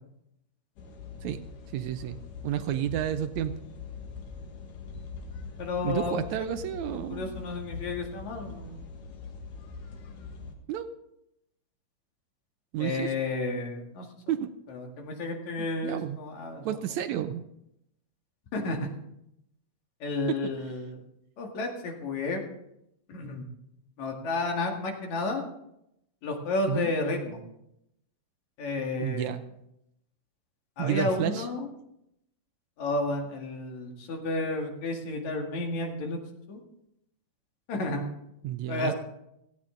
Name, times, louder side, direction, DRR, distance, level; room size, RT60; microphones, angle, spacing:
sound 1, 0.8-10.5, left 4 dB, 85° left, 3.2 m, -42 dB
voice 1, 1.7-2.2 2.4-3.5 5.8-7.4 10.7-10.9 12.7-13.1 14.3-14.5 15.8-16.2 16.7-17.4 26.7-26.9 29.0-29.4 30.8-31.5 38.4-38.9, right 11 dB, 75° right, 10 dB, 1.9 m, -30 dB
voice 2, 5.6-6.5 7.1-8.8 12.8-14.1 14.7-16.8 18.5-18.9 20.0-21.0 21.4-22.4 23.1-23.4 24.0-25.4 26.2-27.4 28.6-29.4 30.8-31.7 32.8-36.2 36.5-36.6 37.7-38.0 38.7-38.9, left 3 dB, 65° left, 2 dB, 3.3 m, -31 dB
17.0 x 14.5 x 3.8 m, 0.81 s
omnidirectional pair, 3.5 m